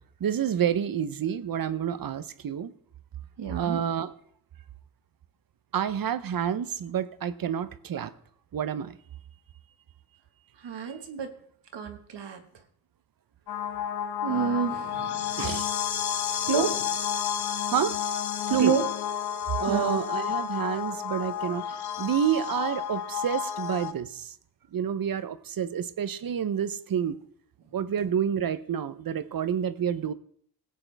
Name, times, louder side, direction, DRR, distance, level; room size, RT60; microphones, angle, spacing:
voice 1, 0.2-2.7 3.5-4.1 5.7-8.1 8.5-9.0 10.9-11.0 15.4-15.7 17.7-18.0 18.3-18.7 19.6-24.3 24.7-27.2 27.7-30.1, right 8 dB, 55° right, 13 dB, 0.7 m, -29 dB
voice 2, 3.4-3.8 10.6-11.3 11.7-12.4 14.2-15.1 16.5-16.7 18.6-18.8 19.7-20.0, right 6 dB, 85° right, 5 dB, 1.6 m, -28 dB
sound 1, 13.5-23.9, left 9 dB, 70° left, 0.8 m, -31 dB
19.0 x 8.6 x 3.4 m, 0.62 s
wide cardioid pair, 135°, 41 cm